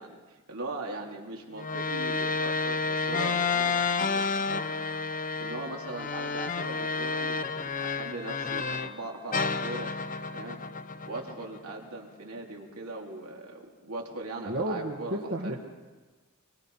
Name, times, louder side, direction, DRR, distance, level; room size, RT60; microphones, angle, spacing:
voice 1, 0.0-4.6 5.4-9.9 10.3-10.6 11.0-15.5, right 2 dB, 85° right, 0 dB, 3.4 m, -40 dB
sound 1, 1.6-9.0 9.3-11.7, left 4 dB, 40° left, 0.8 m, -30 dB
voice 2, 14.4-15.6, right 1 dB, 60° right, 0 dB, 1.8 m, -32 dB
25.0 x 23.0 x 5.7 m, 1.3 s
head